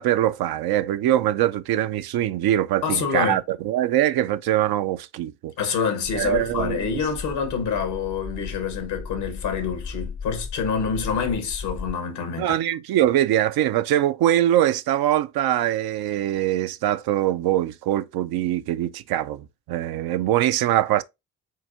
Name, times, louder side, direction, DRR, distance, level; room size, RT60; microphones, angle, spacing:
voice 1, 0.0-5.5 6.1-7.0 12.4-21.0, right 12 dB, 65° right, 0.5 m, -23 dB
voice 2, 2.8-3.4 5.6-12.5, left 6 dB, 80° left, 1.3 m, -26 dB
sound 1, 6.0-11.9, left 5 dB, 20° left, 0.5 m, -36 dB
7.6 x 2.7 x 2.5 m
hypercardioid pair, 40°, 40 cm